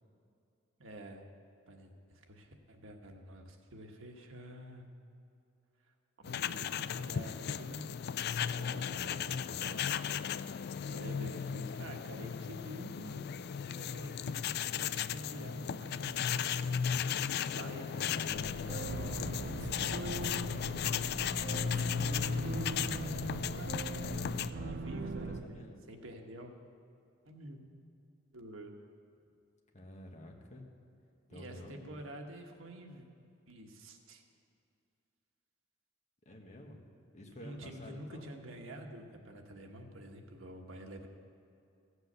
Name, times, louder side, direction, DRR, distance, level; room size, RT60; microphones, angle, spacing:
voice 1, 0.8-1.2 1.7-4.9 6.2-7.9 8.3-9.7 10.9-13.3 13.7-17.0 17.4-20.3 21.4-22.1 24.5-25.6 25.9-26.5 27.2-27.6 28.3-28.7 31.3-33.0 33.5-34.2 37.4-41.1, right 1 dB, 90° right, 3 dB, 1.4 m, -48 dB
sound 1, 6.2-24.5, left 7 dB, 55° left, 0.3 m, -36 dB
voice 2, 8.2-9.9 20.6-22.3 22.9-25.8 29.7-30.7 31.3-32.0 36.2-38.3, left 1 dB, 35° left, 1 dB, 1.5 m, -51 dB
sound 2, 18.3-25.4, right 3 dB, 60° right, 0.5 m, -40 dB
15.5 x 8.1 x 6.7 m, 2.5 s
head